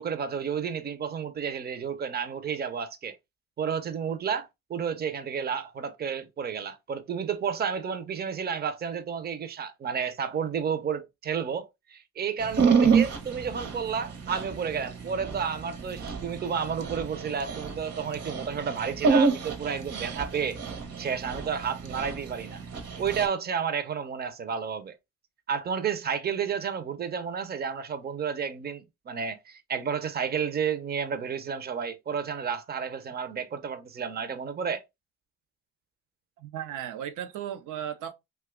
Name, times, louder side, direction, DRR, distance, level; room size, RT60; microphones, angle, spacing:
voice 1, 0.0-3.2 3.6-20.6 21.0-22.6 23.0-24.9 25.5-34.8, right 7 dB, 35° right, 0.6 m, -31 dB
Dog, 12.4-23.3, right 5 dB, 55° right, 0.9 m, -28 dB
voice 2, 36.4-38.1, right 10 dB, 80° right, 0.6 m, -35 dB
2.8 x 2.3 x 3.5 m
cardioid pair, 90°, 30 cm